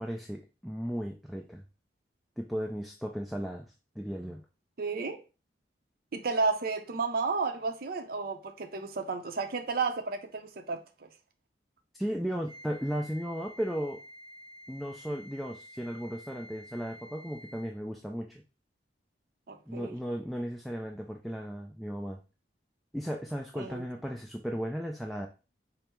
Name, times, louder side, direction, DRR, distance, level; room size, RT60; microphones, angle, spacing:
voice 1, 0.0-1.6 2.4-4.4 12.0-14.0 14.7-18.4 19.7-22.2 22.9-25.3, equal, ahead, 0.4 m, -35 dB
voice 2, 4.8-5.2 6.1-11.1 19.5-20.0 23.6-23.9, right 4 dB, 55° right, 0.6 m, -32 dB
Wind instrument woodwind instrument, 12.5-17.8, equal, 20° left, 2.2 m, -51 dB
5.3 x 2.0 x 4.4 m
head